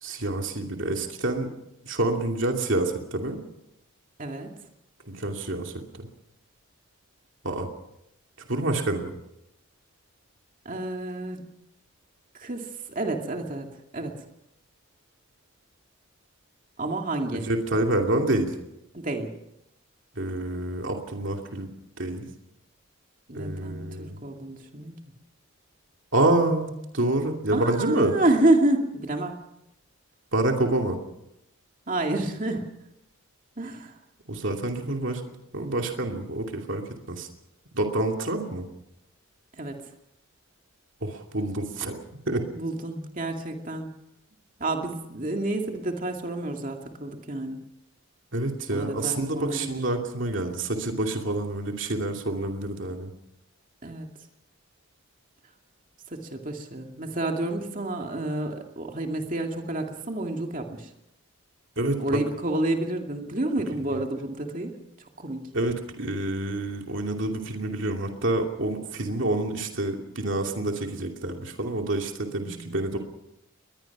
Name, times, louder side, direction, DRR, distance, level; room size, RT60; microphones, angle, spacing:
voice 1, 0.0-1.5 1.8-3.4 5.1-6.1 7.4-7.7 8.5-9.2 17.3-18.5 20.1-21.7 22.0-22.3 23.3-24.2 26.1-28.1 30.3-31.0 34.3-35.2 35.5-37.3 37.7-38.6 41.0-42.5 48.3-53.1 61.8-62.0 65.5-73.0, right 2 dB, 60° right, 2 dB, 2.6 m, -27 dB
voice 2, 4.2-4.5 10.6-11.5 12.3-14.1 16.8-17.5 18.9-19.3 23.3-24.9 27.5-29.4 31.9-32.7 33.6-33.9 39.5-39.8 42.5-43.9 44.6-47.6 48.7-49.8 53.8-54.1 56.1-60.9 62.0-64.7 65.2-65.5 72.3-72.8, right 2 dB, 40° right, 3 dB, 2.4 m, -29 dB
21.5 x 21.0 x 6.1 m, 0.86 s
head